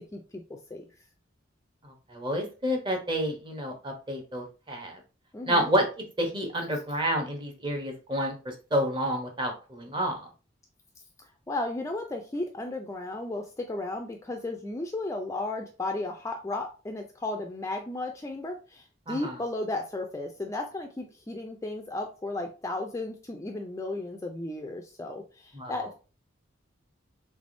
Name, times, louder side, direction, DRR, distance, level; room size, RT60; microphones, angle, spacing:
voice 1, 0.1-0.4 0.7-0.8 5.3-5.8 11.5-25.9, left 2 dB, 15° left, 3 dB, 0.3 m, -34 dB
voice 2, 2.1-5.0 5.4-10.3 19.1-19.3 25.6-25.7, equal, 25° right, 4 dB, 0.8 m, -29 dB
3.4 x 3.3 x 2.6 m, 0.34 s
head